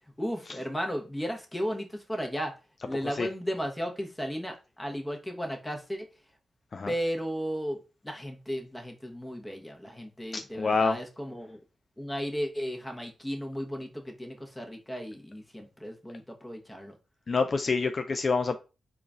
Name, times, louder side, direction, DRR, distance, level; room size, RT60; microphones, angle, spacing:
voice 1, 0.2-2.5 2.8-6.0 6.9-11.6 12.0-16.9, equal, 15° left, 2 dB, 1.1 m, -35 dB
voice 2, 10.3-11.0 17.3-18.6, left 4 dB, 50° left, 7 dB, 0.3 m, -27 dB
3.7 x 2.5 x 3.5 m, 0.31 s
cardioid pair, 50°, 0 cm